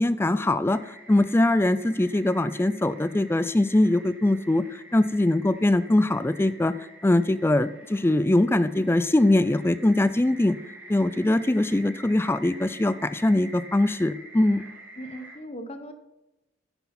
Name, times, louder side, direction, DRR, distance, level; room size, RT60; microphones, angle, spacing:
voice 1, 0.0-6.7 7.0-10.6 10.9-14.6, left 1 dB, 10° left, 15 dB, 0.3 m, -22 dB
sound 1, 0.7-15.4, right 1 dB, 10° right, 2.6 m, -47 dB
voice 2, 15.0-15.9, equal, 30° left, 8 dB, 1.0 m, -38 dB
9.9 x 9.8 x 4.3 m, 0.98 s
head